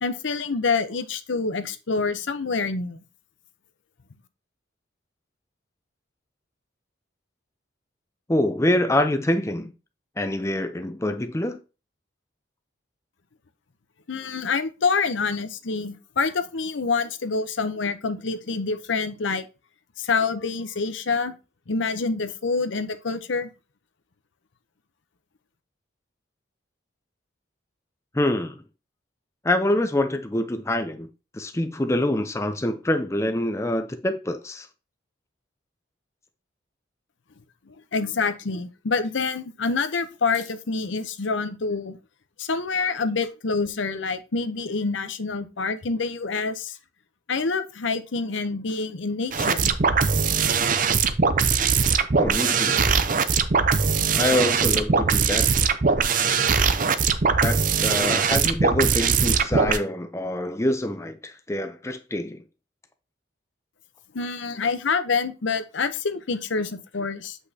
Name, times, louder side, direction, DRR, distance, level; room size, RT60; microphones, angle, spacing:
voice 1, 0.0-3.0 14.1-19.5 20.0-21.4 21.7-23.5 37.7-42.0 42.4-46.8 47.3-49.7 64.1-67.4, left 4 dB, 75° left, 0.7 m, -27 dB
voice 2, 8.3-9.7 10.2-11.6 28.1-28.6 29.4-31.1 31.3-34.7 52.1-52.9 54.1-55.5 57.4-62.4, left 1 dB, 15° left, 0.5 m, -25 dB
sound 1, 49.3-59.8, right 5 dB, 45° right, 0.6 m, -21 dB
8.1 x 5.4 x 2.8 m
head